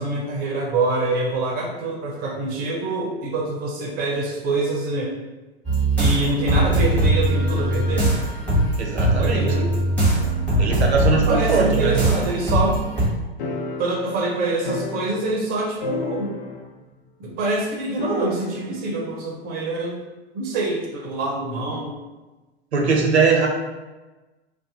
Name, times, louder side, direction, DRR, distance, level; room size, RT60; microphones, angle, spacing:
voice 1, 0.0-5.1 6.0-8.1 9.2-9.7 10.8-12.8 13.8-16.4 17.2-20.0 20.3-22.0, right 2 dB, 30° right, -1 dB, 0.6 m, -25 dB
sound 1, 5.6-13.1, right 1 dB, 5° left, 1.0 m, -21 dB
voice 2, 8.8-9.6 10.6-12.0 22.7-23.5, right 4 dB, 80° right, 1 dB, 0.7 m, -20 dB
sound 2, 13.4-15.5 15.8-16.8 17.1-17.2 18.0-18.8, left 4 dB, 55° left, 0.5 m, -32 dB
2.5 x 2.1 x 2.7 m, 1.2 s
figure-of-eight pair, 95°, 33 cm